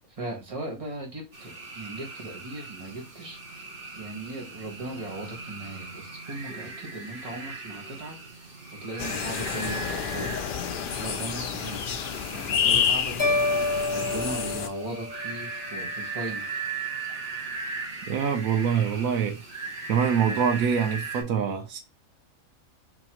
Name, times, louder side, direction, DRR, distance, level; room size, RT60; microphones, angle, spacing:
voice 1, 0.1-3.4 3.9-8.5 8.8-10.4 11.0-11.8 12.3-13.7 13.9-16.6, right 2 dB, 25° right, 1.3 m, -38 dB
sound 1, 1.3-21.2, right 4 dB, 45° right, 1.2 m, -38 dB
sound 2, 9.0-14.7, left 7 dB, 70° left, 0.5 m, -29 dB
sound 3, 13.2-15.5, left 2 dB, 20° left, 0.6 m, -28 dB
voice 2, 18.1-19.4 19.9-21.8, right 7 dB, 90° right, 1.2 m, -25 dB
4.2 x 2.9 x 2.9 m
omnidirectional pair, 1.4 m